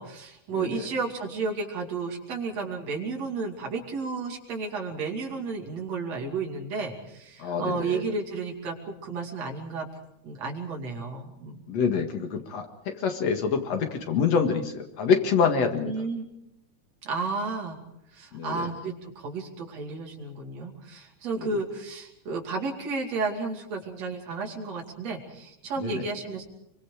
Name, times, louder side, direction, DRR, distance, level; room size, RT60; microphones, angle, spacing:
voice 1, 0.0-9.9 10.2-11.7 15.8-16.2 17.0-17.8 18.1-26.4, right 4 dB, 60° right, 1 dB, 3.8 m, -32 dB
voice 2, 7.4-8.0 11.7-15.9 18.3-18.7 21.4-21.6 25.8-26.1, left 6 dB, 60° left, 5 dB, 3.0 m, -26 dB
24.5 x 24.0 x 5.0 m, 0.81 s
omnidirectional pair, 3.4 m